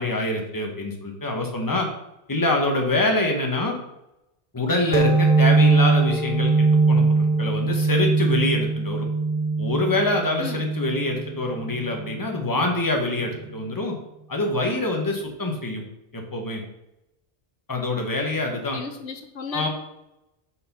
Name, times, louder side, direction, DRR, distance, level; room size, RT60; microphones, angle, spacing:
voice 1, 0.0-1.9 2.3-3.8 4.5-9.1 9.6-14.0 14.3-15.8 16.1-16.6 17.7-18.8 19.5-19.7, left 2 dB, 20° left, 1 dB, 1.2 m, -25 dB
sound 1, 4.9-12.2, right 3 dB, 50° right, 1.0 m, -21 dB
voice 2, 18.7-19.7, left 5 dB, 85° left, 6 dB, 1.1 m, -33 dB
6.5 x 4.5 x 5.5 m, 0.88 s
omnidirectional pair, 1.1 m